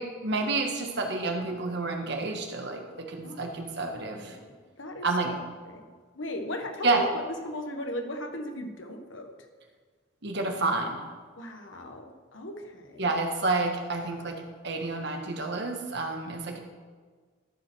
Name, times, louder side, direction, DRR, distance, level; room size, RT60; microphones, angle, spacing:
voice 1, 0.0-4.4 5.0-5.4 6.8-7.1 10.2-11.0 13.0-16.6, right 3 dB, 60° right, 3 dB, 1.4 m, -29 dB
voice 2, 3.8-5.1 5.6-7.0 7.4-9.3 11.4-13.1, left 1 dB, 85° left, 5 dB, 1.3 m, -37 dB
13.0 x 5.1 x 6.1 m, 1.5 s
head